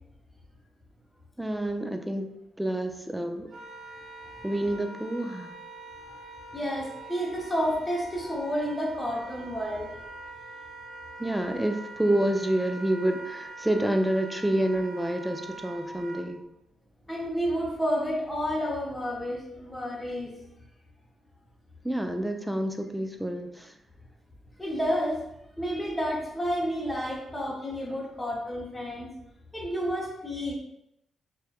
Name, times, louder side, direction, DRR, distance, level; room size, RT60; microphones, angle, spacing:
voice 1, 1.4-3.5 4.4-5.5 11.2-16.4 21.8-23.7, right 1 dB, 5° right, 5 dB, 0.3 m, -28 dB
Wind instrument woodwind instrument, 3.5-16.2, right 2 dB, 70° right, 0.8 m, -44 dB
voice 2, 6.5-9.9 17.1-20.4 24.6-25.2 25.6-29.1 29.5-30.5, equal, 15° left, -3 dB, 0.7 m, -30 dB
2.7 x 2.2 x 2.3 m, 0.83 s
supercardioid pair, 55°, 0 cm